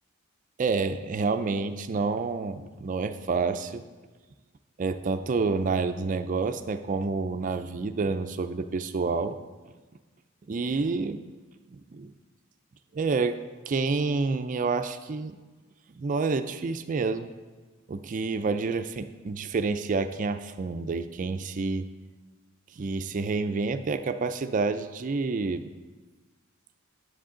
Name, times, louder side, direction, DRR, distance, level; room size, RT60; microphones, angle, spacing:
voice 1, 0.6-3.8 4.8-9.3 10.5-11.2 11.7-12.1 12.9-13.4 13.7-15.4 15.9-17.3 17.9-21.9 22.7-25.6, right 4 dB, 40° right, 9 dB, 0.4 m, -28 dB
10.0 x 7.8 x 3.8 m, 1.3 s
head